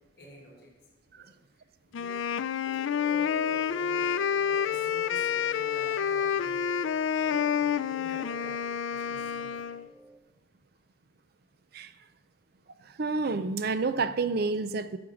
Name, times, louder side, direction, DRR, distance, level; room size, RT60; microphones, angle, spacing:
voice 1, 0.2-0.7 1.1-2.2 2.6-4.1 4.5-6.7 7.2-9.8, equal, 55° left, 1 dB, 4.4 m, -51 dB
Wind instrument woodwind instrument, 1.9-9.9, left 8 dB, 90° left, 0.4 m, -29 dB
sound 1, 2.6-10.2, right 1 dB, 10° right, 0.7 m, -49 dB
voice 2, 11.7-12.1 12.8-15.0, right 3 dB, 55° right, 12 dB, 0.5 m, -30 dB
11.0 x 6.5 x 7.1 m, 1.1 s
head